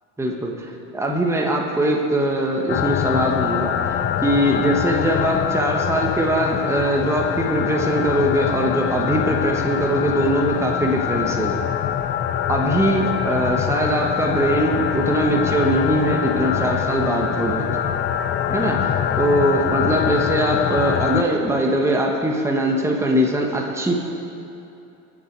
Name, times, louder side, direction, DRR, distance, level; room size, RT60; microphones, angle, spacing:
voice 1, 0.2-11.7 12.5-17.8 18.5-23.9, right 1 dB, 5° right, 0 dB, 1.3 m, -21 dB
sound 1, 2.7-21.2, left 9 dB, 30° left, 0.5 m, -24 dB
21.5 x 7.2 x 4.6 m, 2.8 s
supercardioid pair, 100°, 39 cm